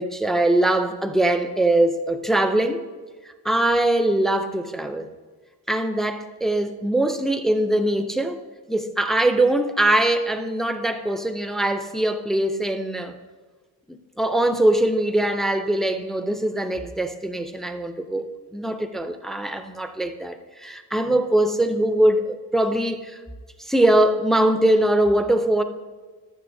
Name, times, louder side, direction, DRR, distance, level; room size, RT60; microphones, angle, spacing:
voice 1, 0.0-2.8 3.4-5.1 5.7-8.4 8.7-13.2 13.9-23.2 23.6-25.6, right 1 dB, ahead, 0.3 m, -22 dB
14.0 x 7.0 x 2.6 m
wide cardioid pair, 145°, 42 cm